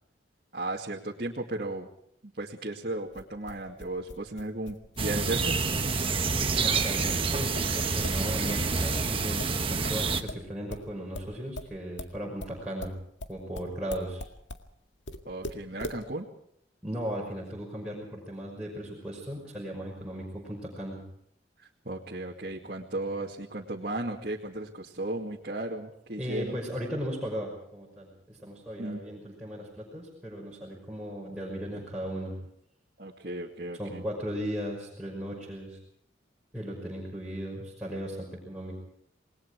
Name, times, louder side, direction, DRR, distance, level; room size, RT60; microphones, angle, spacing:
voice 1, 0.5-1.9 2.2-5.6 15.3-16.3 21.6-26.6 28.8-29.0 33.0-34.0, right 2 dB, 50° right, -2 dB, 2.3 m, -35 dB
sound 1, 3.1-8.7 8.9-14.7 15.1-16.0, left 1 dB, 80° left, 2.0 m, -41 dB
sound 2, 5.0-10.2, right 4 dB, 30° right, 1.3 m, -28 dB
voice 2, 6.5-12.9 13.3-14.2 16.8-21.0 26.2-32.4 33.7-35.8 36.5-38.7, equal, 5° right, -5 dB, 5.8 m, -37 dB
28.0 x 20.5 x 4.8 m, 0.69 s
head